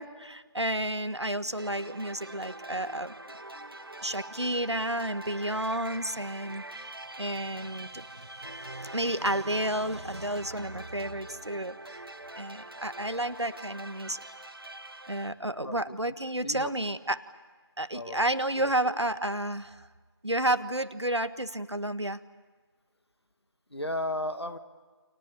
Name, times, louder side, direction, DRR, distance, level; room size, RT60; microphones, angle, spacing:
voice 1, 0.0-3.1 4.0-12.0 12.4-14.2 15.1-17.2 17.8-19.9 20.2-22.2, right 1 dB, 85° right, 11 dB, 1.6 m, -31 dB
sound 1, 1.6-15.3, right 2 dB, 55° right, 1.5 m, -44 dB
voice 2, 15.6-16.0 16.4-16.7 17.9-18.3 18.6-19.0 23.7-24.6, left 1 dB, 70° left, 10 dB, 2.0 m, -35 dB
30.0 x 27.5 x 7.1 m, 1.5 s
figure-of-eight pair, 170°, 14 cm